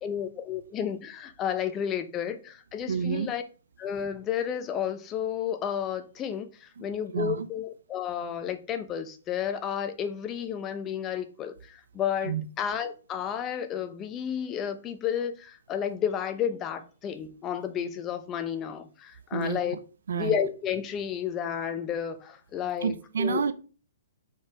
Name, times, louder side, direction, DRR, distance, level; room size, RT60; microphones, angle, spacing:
voice 1, 0.0-3.4 3.8-19.8 20.1-23.4, left 8 dB, 20° left, 0.9 m, -32 dB
voice 2, 2.9-3.3 6.8-6.9 7.1-7.5 12.2-12.5 19.3-19.6 20.1-20.3 22.8-23.5, right 6 dB, 80° right, 0.6 m, -29 dB
5.5 x 4.9 x 4.8 m
hypercardioid pair, 150°, 0 cm